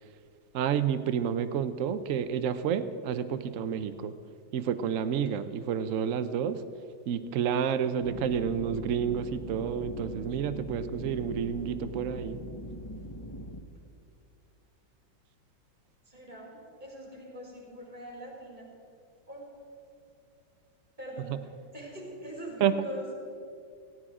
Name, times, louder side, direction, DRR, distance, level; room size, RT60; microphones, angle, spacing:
voice 1, 0.5-4.1 4.5-6.6 7.1-12.4 22.6-22.7, right 8 dB, 75° right, 11 dB, 0.7 m, -30 dB
voice 2, 5.1-5.5 16.0-18.7 19.3-19.4 21.0-21.3 21.7-23.1, equal, 20° right, -3 dB, 4.6 m, -43 dB
sound 1, 8.0-13.6, equal, 30° left, 0.5 m, -41 dB
17.5 x 16.0 x 4.9 m, 2.4 s
omnidirectional pair, 2.2 m